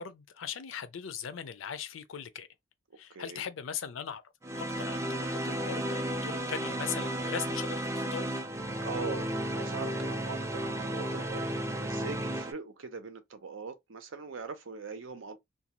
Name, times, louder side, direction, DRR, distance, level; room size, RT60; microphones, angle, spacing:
voice 1, 0.0-2.5 3.0-4.2 4.5-8.4, left 7 dB, 90° left, 0.5 m, -39 dB
voice 2, 3.1-3.4 8.8-15.4, right 4 dB, 85° right, 0.6 m, -41 dB
sound 1, 4.4-12.5, right 1 dB, 15° right, 0.4 m, -33 dB
2.6 x 2.3 x 2.9 m
head